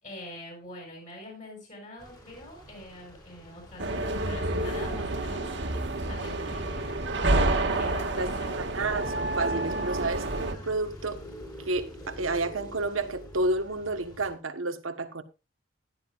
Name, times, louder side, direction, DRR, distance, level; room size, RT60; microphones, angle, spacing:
voice 1, 0.0-5.5 6.0-7.0 7.8-8.6, left 1 dB, 40° left, 6.6 m, -44 dB
sound 1, 2.0-14.3, left 1 dB, 20° left, 3.5 m, -47 dB
sound 2, 3.8-10.5, right 2 dB, 65° right, 1.9 m, -29 dB
voice 2, 8.7-11.2 11.7-15.2, right 2 dB, 90° right, 1.3 m, -30 dB
15.5 x 11.5 x 2.5 m
head